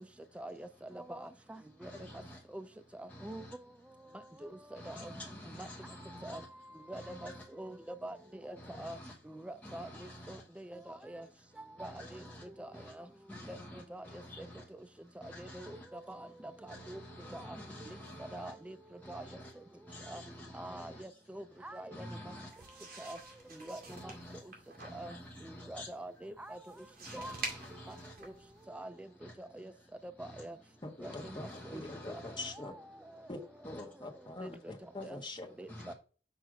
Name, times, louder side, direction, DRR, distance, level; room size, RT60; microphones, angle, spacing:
voice 1, 0.4-0.7 0.9-1.9 2.5-2.6 3.0-3.4 4.4-5.1 5.6-5.7 6.2-6.4 6.9-7.3 7.6-8.2 8.4-9.0 9.3-11.2 11.8-12.7 13.0-13.1 13.5-13.6 13.9-14.1 15.4-16.3 16.7-17.0 17.3-17.6 18.3-18.8 19.1-19.2 20.1-20.2 20.5-22.3 23.0-23.2 23.5-24.1 24.9-25.1 25.4-26.6 27.1-27.3 27.9-28.0 28.2-28.3 28.7-29.1 29.4-29.7 30.2-30.6 31.0-31.1 31.7-31.8 34.4-34.5 35.0-35.2 35.6-35.9, right 1 dB, 5° right, 0.3 m, -45 dB
voice 2, 1.8-2.4 3.1-3.5 4.7-6.5 6.9-7.5 8.6-9.2 9.6-10.4 11.8-12.4 12.7-12.9 13.3-14.7 15.2-15.9 16.7-18.5 19.0-19.5 19.9-21.0 21.9-22.5 23.9-24.4 24.8-25.9 27.0-28.1 29.2-29.3 30.2-30.4 31.0-32.6 33.6-33.8 35.7-35.9, left 1 dB, 10° left, 1.1 m, -48 dB
Turning pages, 22.5-28.6, right 2 dB, 60° right, 2.0 m, -48 dB
voice 3, 30.8-32.7 33.3-35.5, left 2 dB, 25° left, 1.3 m, -44 dB
6.3 x 3.3 x 6.0 m
head